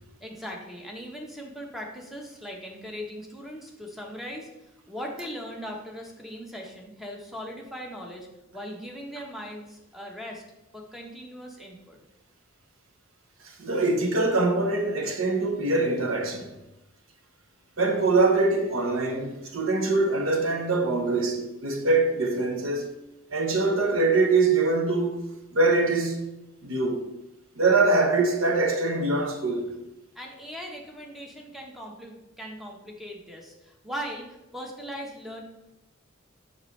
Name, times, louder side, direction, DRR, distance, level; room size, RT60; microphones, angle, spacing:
voice 1, 0.2-8.3 8.5-10.4 10.7-12.0 30.1-34.3 34.5-35.4, equal, ahead, 1.1 m, -39 dB
voice 2, 13.4-16.5 17.8-22.9 23.3-25.2 25.5-26.3 26.6-27.0 27.6-29.7, right 3 dB, 85° right, 1.0 m, -23 dB
7.2 x 6.4 x 3.3 m
head